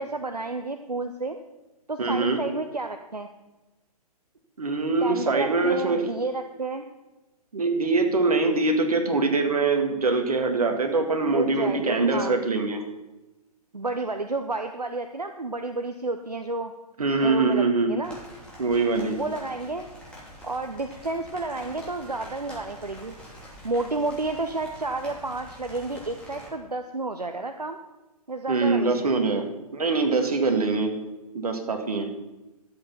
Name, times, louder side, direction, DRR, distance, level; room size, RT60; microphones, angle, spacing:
voice 1, 0.0-1.4 1.9-3.3 5.0-6.8 11.2-12.4 13.7-16.7 17.2-18.2 19.1-19.9 20.4-23.1 23.6-27.8 28.3-29.1, right 3 dB, 90° right, 7 dB, 0.8 m, -31 dB
voice 2, 2.0-2.4 4.6-6.1 7.5-12.8 17.0-17.9 18.6-19.2 28.5-29.5 29.7-31.0 31.3-32.1, right 3 dB, 70° right, 5 dB, 1.9 m, -23 dB
sound 1, 18.0-26.5, equal, 5° left, 2.8 m, -45 dB
12.0 x 7.9 x 5.8 m, 1.1 s
figure-of-eight pair, 125°, 20 cm